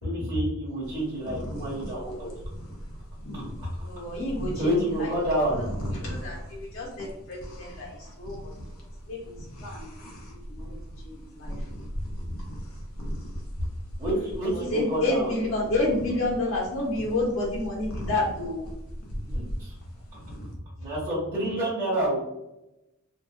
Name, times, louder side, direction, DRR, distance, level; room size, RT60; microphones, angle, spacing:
voice 1, 0.0-2.3 3.3-3.7 4.6-5.6 14.0-15.3 19.2-19.7 20.8-22.2, right 1 dB, 20° right, -11 dB, 1.0 m, -28 dB
sound 1, 0.8-20.5, equal, 80° left, 0.6 m, -38 dB
voice 2, 3.8-5.6 5.9-8.5 9.1-9.9 10.2-10.8 11.0-11.5 14.5-18.6, left 2 dB, 65° left, -5 dB, 1.1 m, -30 dB
2.6 x 2.4 x 2.2 m, 0.91 s
head